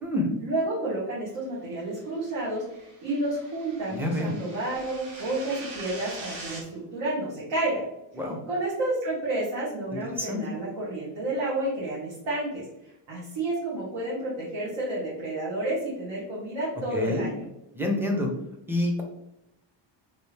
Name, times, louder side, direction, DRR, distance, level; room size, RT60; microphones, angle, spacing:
voice 1, 0.4-7.8 8.5-12.6 13.1-17.5, right 2 dB, 80° right, -6 dB, 1.4 m, -30 dB
sound 1, 2.2-6.6, right 2 dB, 50° right, 1.3 m, -43 dB
voice 2, 3.9-4.3 8.2-8.4 10.1-10.4 16.9-17.3 17.7-18.3 18.7-19.0, left 1 dB, 5° right, 1 dB, 0.4 m, -27 dB
3.3 x 2.7 x 3.2 m, 0.85 s
cardioid pair, 160°, 45 cm